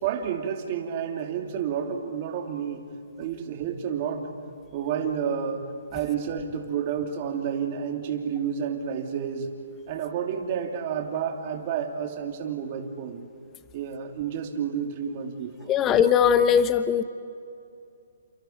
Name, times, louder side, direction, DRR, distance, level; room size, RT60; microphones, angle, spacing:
voice 1, 0.0-2.8 3.2-4.3 4.7-5.6 5.9-9.5 9.9-13.3 13.7-15.7, right 7 dB, 35° right, 2 dB, 2.9 m, -30 dB
voice 2, 15.7-17.0, left 8 dB, 15° left, 11 dB, 1.0 m, -20 dB
30.0 x 29.0 x 4.6 m, 2.5 s
hypercardioid pair, 160°, 0 cm